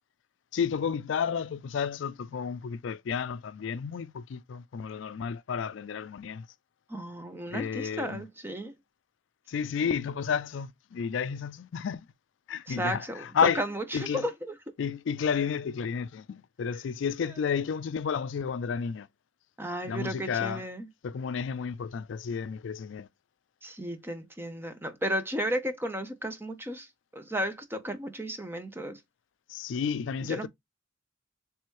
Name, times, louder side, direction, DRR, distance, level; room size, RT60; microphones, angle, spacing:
voice 1, 0.5-6.5 7.5-8.2 9.5-12.1 12.5-13.6 13.9-14.3 14.8-19.1 19.8-20.6 21.0-23.1 29.5-30.5, left 6 dB, 75° left, 0.4 m, -31 dB
voice 2, 6.9-8.8 12.7-14.7 19.6-20.9 23.6-26.9 27.1-29.0 30.2-30.5, equal, 10° right, 0.7 m, -34 dB
3.4 x 3.0 x 4.5 m
head